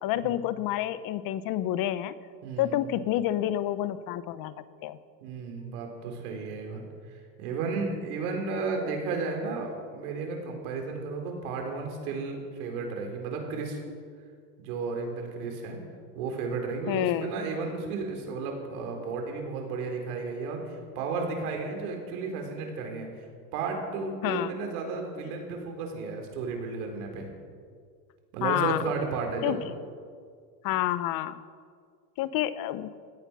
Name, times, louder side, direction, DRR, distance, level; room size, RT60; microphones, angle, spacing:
voice 1, 0.0-2.1 2.6-4.5 4.8-5.0 16.9-17.3 24.2-24.5 28.4-28.8 29.4-29.6 30.6-31.4 32.2-32.9, left 13 dB, 50° left, 14 dB, 0.9 m, -28 dB
voice 2, 2.4-2.8 5.2-6.8 7.4-13.8 14.6-15.8 16.1-23.1 23.5-27.3 28.3-29.6, right 4 dB, 80° right, 3 dB, 4.3 m, -33 dB
17.0 x 13.5 x 6.2 m, 2.1 s
supercardioid pair, 115°, 44 cm